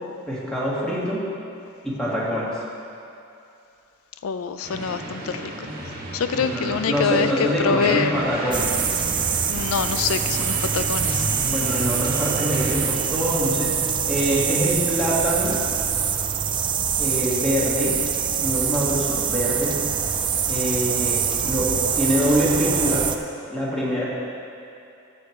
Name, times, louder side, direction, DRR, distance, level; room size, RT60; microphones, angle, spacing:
voice 1, 0.3-1.3 1.8-2.6 6.3-8.7 11.4-13.8 14.1-15.6 17.0-18.1 18.4-19.8 20.5-23.1 23.5-24.1, equal, 5° left, -8 dB, 2.2 m, -24 dB
voice 2, 4.2-5.7 6.1-8.2 9.5-11.3, left 6 dB, 80° left, 10 dB, 0.4 m, -25 dB
sound 1, 4.6-12.9, right 1 dB, 45° right, 1.7 m, -33 dB
sound 2, 8.5-23.2, right 7 dB, 25° right, 0.4 m, -24 dB
13.5 x 6.9 x 4.6 m, 2.6 s
head